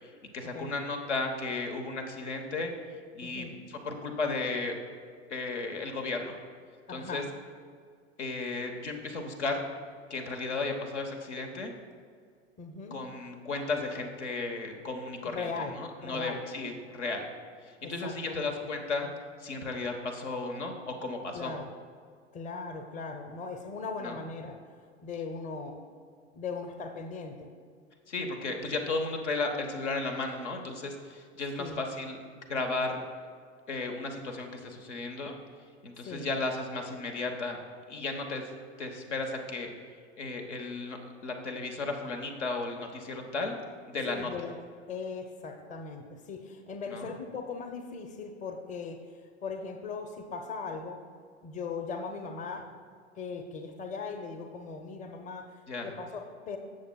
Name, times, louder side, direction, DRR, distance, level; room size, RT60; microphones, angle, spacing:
voice 1, 0.0-2.7 3.1-4.8 5.3-6.4 6.9-7.2 8.2-9.6 10.1-11.7 12.9-15.5 15.8-17.3 17.6-19.1 19.4-21.5 24.0-24.2 28.1-32.2 32.5-33.0 33.7-35.3 35.8-37.6 37.9-38.5 38.8-39.7 40.2-43.5 43.9-44.3 46.9-47.1 55.7-55.9, left 3 dB, 80° left, 3 dB, 1.2 m, -34 dB
voice 2, 3.2-3.5 6.9-7.3 12.6-13.0 15.2-16.4 17.8-18.7 21.3-21.7 22.3-24.6 25.0-25.8 26.3-27.5 31.6-31.8 36.0-36.3 44.1-44.6 44.9-49.0 49.4-51.0 51.4-52.7 53.1-56.6, left 4 dB, 20° left, 5 dB, 0.7 m, -39 dB
15.5 x 6.5 x 2.3 m, 2.1 s
figure-of-eight pair, 90°, 35 cm